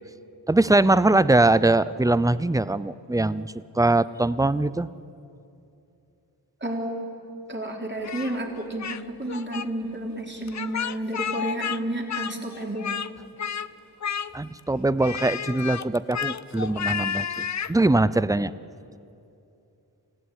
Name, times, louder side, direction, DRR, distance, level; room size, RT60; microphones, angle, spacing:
voice 1, 0.5-4.9 14.3-18.5, right 2 dB, 10° right, 17 dB, 0.5 m, -22 dB
voice 2, 6.6-7.1 7.5-13.0, right 1 dB, 25° right, 1 dB, 3.7 m, -31 dB
Speech, 8.0-9.0 9.3-9.7 10.5-11.8 12.1-13.1 13.4-13.7 14.0-14.6 15.0-17.7, left 8 dB, 45° left, 0.6 m, -31 dB
27.0 x 16.0 x 10.0 m, 2.7 s
wide cardioid pair, 120°, 41 cm